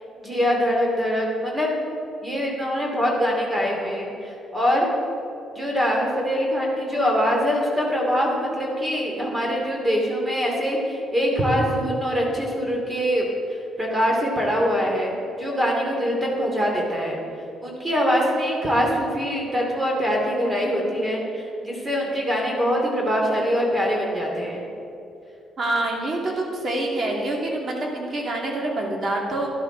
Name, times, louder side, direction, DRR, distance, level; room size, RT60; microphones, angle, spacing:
voice 1, 0.2-1.7 2.2-4.9 5.5-17.2 17.6-24.6, equal, 15° right, -1 dB, 2.6 m, -23 dB
voice 2, 25.6-29.5, right 2 dB, 45° right, -1 dB, 2.5 m, -26 dB
11.5 x 11.0 x 4.0 m, 2.8 s
cardioid pair, 90°, 0 cm